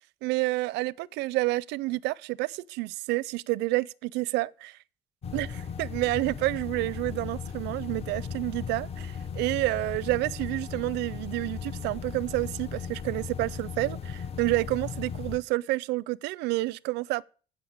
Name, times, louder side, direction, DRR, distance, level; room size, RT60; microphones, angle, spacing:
voice 1, 0.2-4.8 5.3-17.2, right 20 dB, 90° right, 0.5 m, -29 dB
sound 1, 5.2-15.4, left 6 dB, 35° left, 0.9 m, -37 dB
15.0 x 5.6 x 8.4 m
cardioid pair, 110°, 17 cm